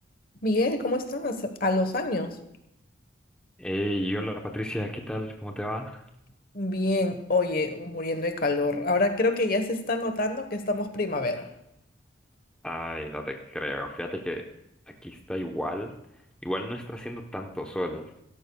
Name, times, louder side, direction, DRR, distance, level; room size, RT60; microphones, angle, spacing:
voice 1, 0.4-2.4 6.5-11.5, left 2 dB, 50° left, 7 dB, 1.2 m, -26 dB
voice 2, 3.6-6.0 12.6-14.4 15.0-15.9 16.4-18.2, equal, 5° left, 2 dB, 0.9 m, -32 dB
16.5 x 13.0 x 2.3 m, 0.81 s
head